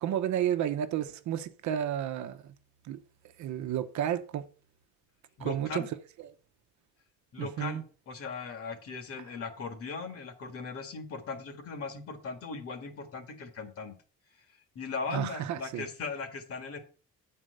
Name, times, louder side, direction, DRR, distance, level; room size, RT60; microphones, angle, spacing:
voice 1, 0.0-2.5 2.8-3.0 3.4-4.5 5.4-5.8 7.4-7.8 15.1-15.9, right 10 dB, 70° right, 0.9 m, -31 dB
voice 2, 5.4-5.9 7.3-14.0 14.8-16.8, left 4 dB, 50° left, 1.8 m, -38 dB
8.9 x 4.5 x 6.6 m
cardioid pair, 145°, 30 cm